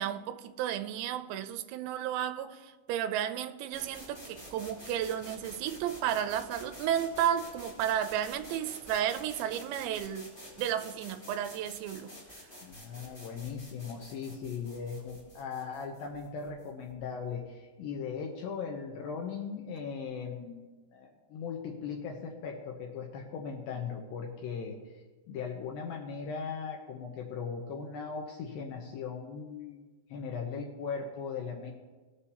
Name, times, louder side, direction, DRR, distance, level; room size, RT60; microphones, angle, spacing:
voice 1, 0.0-10.3 10.6-12.1, right 10 dB, 80° right, 2.7 m, -33 dB
sound 1, 3.7-17.4, equal, 15° left, 3.5 m, -49 dB
voice 2, 12.6-24.8 25.3-31.7, left 6 dB, 90° left, 2.0 m, -38 dB
19.5 x 6.9 x 2.8 m
omnidirectional pair, 5.3 m